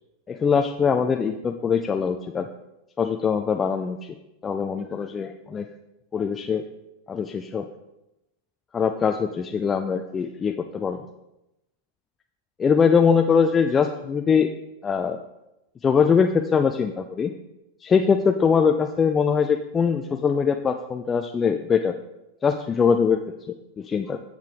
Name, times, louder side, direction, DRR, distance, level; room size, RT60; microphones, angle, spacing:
voice 1, 0.3-2.5 3.0-4.2 4.4-5.7 6.1-6.6 7.1-7.7 8.7-11.0 12.6-14.5 14.8-15.2 15.8-17.3 17.8-21.9 22.4-23.2 23.5-24.2, left 6 dB, 20° left, 5 dB, 0.4 m, -22 dB
7.4 x 7.2 x 3.7 m, 0.91 s
figure-of-eight pair, 90°, 0 cm